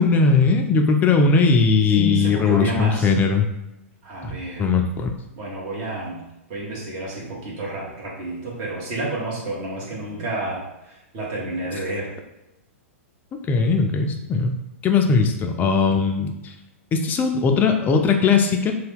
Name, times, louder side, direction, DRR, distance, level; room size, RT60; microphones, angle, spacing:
voice 1, 0.0-3.4 4.6-5.1 13.5-16.5 16.9-18.7, left 4 dB, 20° left, 4 dB, 0.4 m, -19 dB
voice 2, 1.9-3.1 4.0-4.7 5.3-12.1, right 2 dB, 45° right, -5 dB, 1.3 m, -30 dB
2.7 x 2.2 x 3.5 m, 0.95 s
hypercardioid pair, 115°, 8 cm